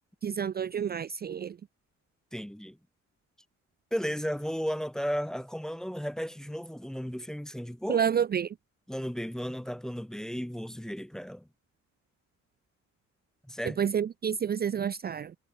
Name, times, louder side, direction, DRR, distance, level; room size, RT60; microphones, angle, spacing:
voice 1, 0.2-1.6 7.9-8.5 13.8-15.4, right 8 dB, 30° right, 0.6 m, -29 dB
voice 2, 2.3-2.8 3.9-8.0 8.9-11.5 13.5-13.8, equal, ahead, 1.1 m, -34 dB
cardioid pair, 150°, 30 cm